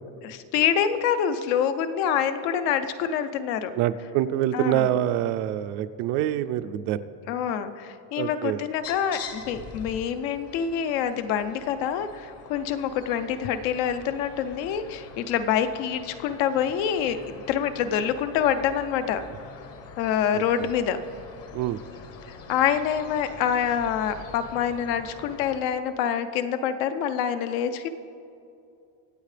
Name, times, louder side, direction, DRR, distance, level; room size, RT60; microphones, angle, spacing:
voice 1, 0.2-3.7 4.5-4.9 7.3-19.2 20.0-21.0 22.3-27.9, left 8 dB, 75° left, 10 dB, 0.9 m, -26 dB
voice 2, 3.8-7.0 8.2-8.6 20.3-20.4 21.5-21.8, right 12 dB, 55° right, 12 dB, 0.4 m, -25 dB
sound 1, 8.8-25.6, left 5 dB, 35° left, 0.8 m, -45 dB
24.5 x 8.2 x 3.3 m, 2.5 s
cardioid pair, 180°, 42 cm